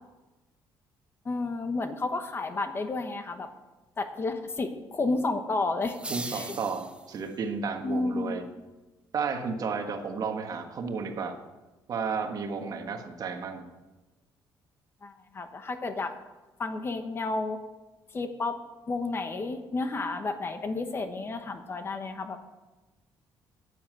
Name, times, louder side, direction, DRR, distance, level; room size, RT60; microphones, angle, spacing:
voice 1, 1.2-3.5 4.0-6.0 6.3-6.6 7.8-8.4 15.0-16.1 16.6-17.6 18.1-18.6 18.9-22.4, left 3 dB, 30° left, 8 dB, 1.1 m, -31 dB
sound 1, 5.8-7.4, right 2 dB, 15° right, 0.7 m, -39 dB
voice 2, 6.1-8.4 9.1-11.4 11.9-13.7, right 5 dB, 50° right, 6 dB, 1.4 m, -32 dB
10.0 x 9.6 x 7.6 m, 1.1 s
cardioid pair, 135°, 8 cm